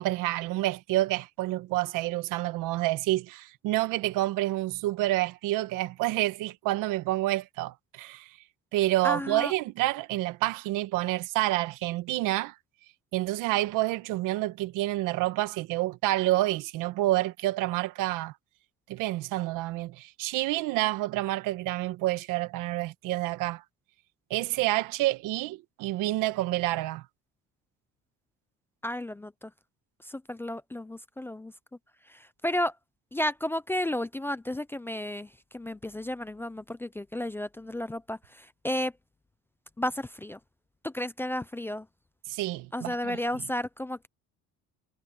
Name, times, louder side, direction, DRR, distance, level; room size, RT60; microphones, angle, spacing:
voice 1, 0.0-8.4 8.7-12.5 13.1-18.3 18.9-23.6 24.3-27.0 42.3-43.2, right 17 dB, 85° right, 1.5 m, -28 dB
voice 2, 9.0-9.5 28.8-29.5 30.0-31.5 32.1-32.8 33.1-38.9 39.8-40.4 40.8-41.9 42.7-44.1, left 1 dB, 5° left, 0.4 m, -33 dB
cardioid pair, 155°, 31 cm